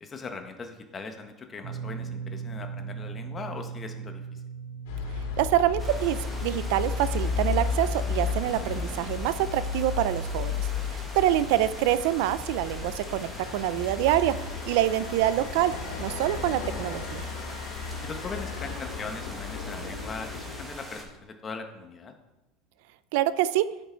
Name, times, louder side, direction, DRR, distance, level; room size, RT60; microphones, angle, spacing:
voice 1, 0.0-4.4 11.0-11.2 18.0-22.1, left 4 dB, 20° left, 5 dB, 1.0 m, -40 dB
sound 1, 1.6-13.9 14.1-14.4 16.0-16.1, right 6 dB, 25° right, 1.1 m, -42 dB
sound 2, 4.9-20.6, left 5 dB, 85° left, 2.1 m, -33 dB
voice 2, 5.4-14.3 14.7-15.7 16.0-17.3 23.1-23.7, right 13 dB, 65° right, 15 dB, 0.4 m, -26 dB
sound 3, 5.8-21.0, equal, 5° right, 1.3 m, -43 dB
12.0 x 5.8 x 4.4 m, 0.99 s
cardioid pair, 165°, 0 cm